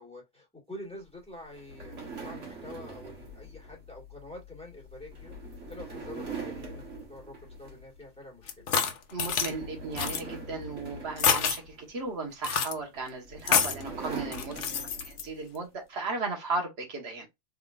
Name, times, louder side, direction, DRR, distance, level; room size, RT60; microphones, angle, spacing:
voice 1, 0.0-5.3 5.7-8.7 14.4-15.0, left 1 dB, 5° left, 1.7 m, -47 dB
sound 1, 1.5-8.1 8.4-8.7 9.1-12.1 12.9-15.4, right 3 dB, 75° right, 1.7 m, -42 dB
sound 2, 8.5-9.5 10.0-10.2 11.2-11.6 12.4-12.7 13.5-13.8 14.3-15.2, left 7 dB, 70° left, 1.0 m, -27 dB
voice 2, 9.1-14.6 15.0-17.3, right 3 dB, 60° right, 1.5 m, -35 dB
3.7 x 3.6 x 2.4 m
omnidirectional pair, 1.3 m